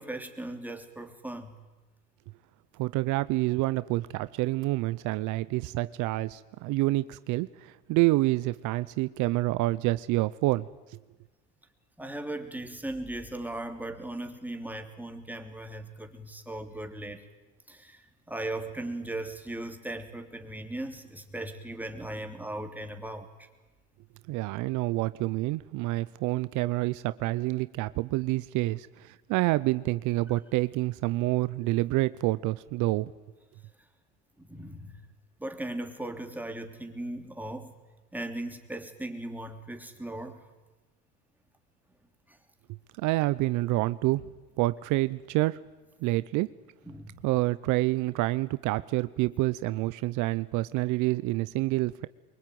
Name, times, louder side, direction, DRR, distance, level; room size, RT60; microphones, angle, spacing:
voice 1, 0.0-1.5 12.0-17.2 17.7-23.5 34.4-35.0 35.4-37.7 38.1-40.5 42.3-42.4 46.8-47.2, right 1 dB, 5° right, 5 dB, 3.2 m, -38 dB
voice 2, 2.7-10.7 24.3-33.1 43.0-44.3 44.6-45.6 46.0-46.5 47.2-52.1, right 19 dB, 65° right, 16 dB, 0.8 m, -28 dB
24.0 x 23.0 x 9.4 m, 1.2 s
supercardioid pair, 95°, 32 cm